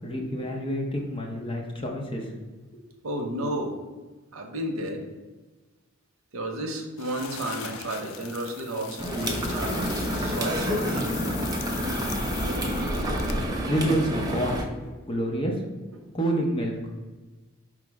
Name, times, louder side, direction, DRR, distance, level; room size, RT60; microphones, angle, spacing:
voice 1, 0.0-2.3 2.7-2.8 13.1-14.5 15.1-15.6 16.1-16.8, right 1 dB, 25° left, 0 dB, 0.6 m, -28 dB
voice 2, 3.0-3.8 4.3-5.0 6.3-11.3 15.9-16.0, right 1 dB, 80° right, 3 dB, 0.7 m, -32 dB
sound 1, 7.0-13.5, left 8 dB, 70° left, 0.3 m, -40 dB
sound 2, 9.0-14.6, equal, 20° right, 0.5 m, -28 dB
4.6 x 2.0 x 4.6 m, 1.2 s
head